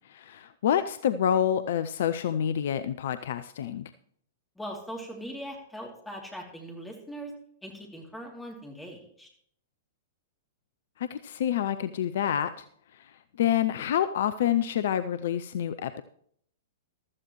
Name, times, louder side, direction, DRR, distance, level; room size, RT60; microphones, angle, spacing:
voice 1, 0.0-3.9 11.0-12.7 12.9-13.1 13.4-16.0, left 10 dB, 55° left, 14 dB, 0.4 m, -28 dB
voice 2, 4.6-7.3 7.6-9.3, equal, 5° left, 0 dB, 2.9 m, -40 dB
15.0 x 13.0 x 3.1 m, 0.65 s
figure-of-eight pair, 105°, 0 cm